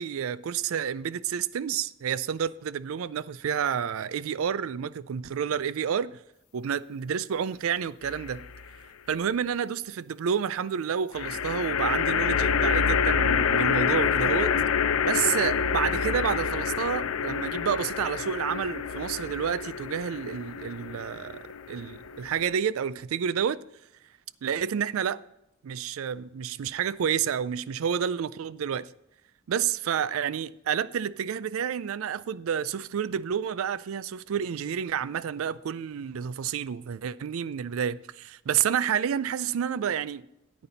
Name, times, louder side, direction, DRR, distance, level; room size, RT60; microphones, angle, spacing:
voice 1, 0.0-6.2 6.5-8.4 9.1-14.5 15.0-23.6 24.4-25.2 25.6-28.9 29.5-40.2, right 8 dB, 70° right, 0.4 m, -29 dB
sound 1, 8.0-8.7 11.1-22.5, left 6 dB, 85° left, 0.5 m, -27 dB
9.7 x 8.8 x 4.0 m
head